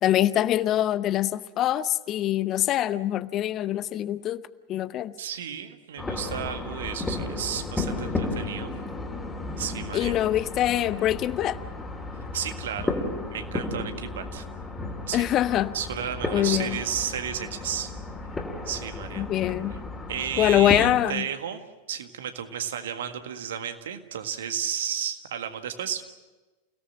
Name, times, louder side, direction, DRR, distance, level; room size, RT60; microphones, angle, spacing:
voice 1, 0.0-4.4 4.7-5.1 9.9-11.6 15.1-15.7 16.3-16.8 19.2-19.7 20.4-21.2, left 12 dB, 35° left, 17 dB, 0.7 m, -24 dB
voice 2, 5.2-8.7 9.6-10.2 12.3-12.9 13.3-14.4 15.1-15.3 15.7-17.9 18.6-19.2 20.1-21.6 21.9-26.0, right 9 dB, 60° right, 8 dB, 1.7 m, -33 dB
sound 1, 6.0-20.9, left 2 dB, 10° left, 3.2 m, -34 dB
29.5 x 17.5 x 7.4 m, 1.2 s
figure-of-eight pair, 90°, 0 cm